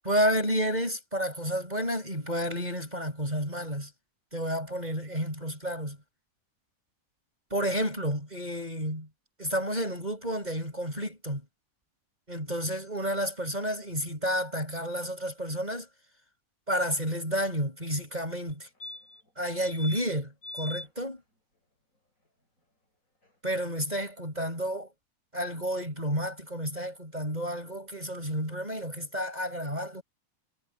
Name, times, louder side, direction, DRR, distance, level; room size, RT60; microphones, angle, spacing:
voice 1, 0.0-3.9 4.3-6.0 7.5-9.1 9.4-11.4 12.3-15.9 16.7-18.7 19.4-21.2 23.4-24.9 25.3-30.0, equal, 10° right, 6.7 m, -31 dB
sound 1, 18.5-18.6 18.8-19.3 19.6-20.0 20.4-20.9 23.2-23.3 23.5-23.6, left 2 dB, 25° left, 7.9 m, -41 dB
omnidirectional pair, 3.7 m